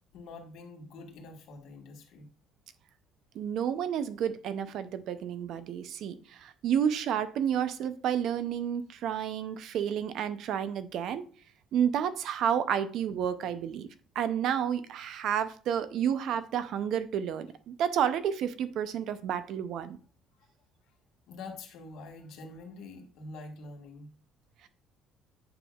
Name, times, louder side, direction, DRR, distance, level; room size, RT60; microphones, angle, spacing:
voice 1, 0.1-2.3 21.3-24.1, left 3 dB, 65° left, 2 dB, 1.5 m, -45 dB
voice 2, 3.3-11.2 11.7-13.9 14.2-20.0, right 9 dB, 55° right, 12 dB, 0.5 m, -30 dB
8.8 x 5.3 x 2.3 m, 0.40 s
cardioid pair, 165°, 0 cm